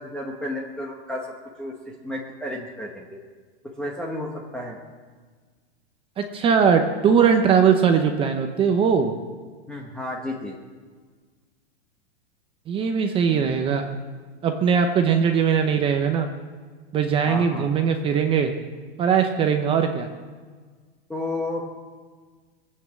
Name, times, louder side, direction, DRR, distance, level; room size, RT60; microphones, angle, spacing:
voice 1, 0.0-3.2 3.6-4.8 9.7-10.6 17.3-17.7 21.1-21.7, left 1 dB, 5° left, -2 dB, 1.1 m, -32 dB
voice 2, 6.2-9.1 12.7-13.9 14.4-16.3 16.9-18.5 19.0-20.1, right 6 dB, 15° right, 5 dB, 0.7 m, -20 dB
21.0 x 8.6 x 7.3 m, 1.5 s
supercardioid pair, 160°, 32 cm